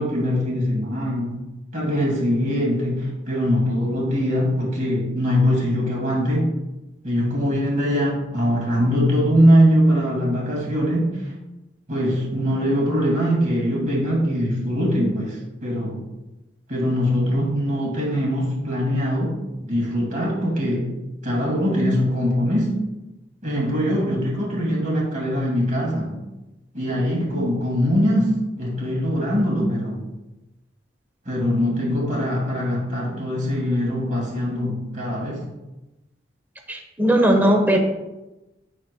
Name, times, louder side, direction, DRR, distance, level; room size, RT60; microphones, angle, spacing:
voice 1, 0.0-1.4 1.7-6.5 7.0-11.2 11.9-16.0 16.7-19.3 19.6-20.9 21.2-22.7 23.4-26.2 26.7-30.0 31.3-35.4, equal, 45° right, -4 dB, 2.4 m, -22 dB
voice 2, 36.7-37.8, right 1 dB, 10° right, 3 dB, 0.9 m, -18 dB
14.5 x 5.0 x 2.3 m, 1.0 s
head